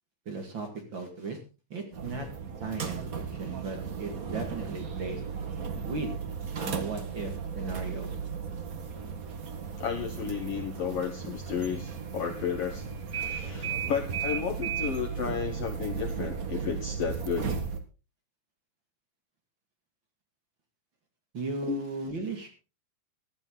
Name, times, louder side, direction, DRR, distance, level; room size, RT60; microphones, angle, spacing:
voice 1, 0.3-1.4 1.7-2.3 2.6-5.2 5.8-6.2 6.6-8.1 21.3-22.5, right 3 dB, 40° right, 4 dB, 2.4 m, -36 dB
sound 1, 1.9-17.8, right 6 dB, 65° right, 0.8 m, -35 dB
voice 2, 9.8-12.8 13.1-17.5 21.7-21.8, left 7 dB, 60° left, 6 dB, 1.6 m, -33 dB
15.5 x 11.5 x 3.8 m, 0.31 s
omnidirectional pair, 3.9 m